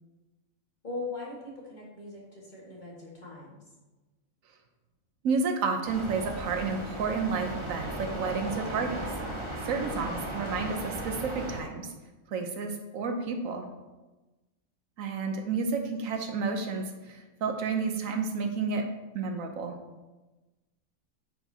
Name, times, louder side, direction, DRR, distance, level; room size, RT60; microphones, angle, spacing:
voice 1, 0.8-3.6 9.7-10.2, left 3 dB, 35° left, -5 dB, 1.7 m, -40 dB
voice 2, 5.2-9.1 9.6-11.9 12.3-13.7 15.0-18.9 19.1-19.8, right 4 dB, 75° right, 5 dB, 1.1 m, -31 dB
sound 1, 5.8-11.6, right 1 dB, 25° right, 0.9 m, -36 dB
8.5 x 5.0 x 2.7 m, 1.1 s
omnidirectional pair, 1.5 m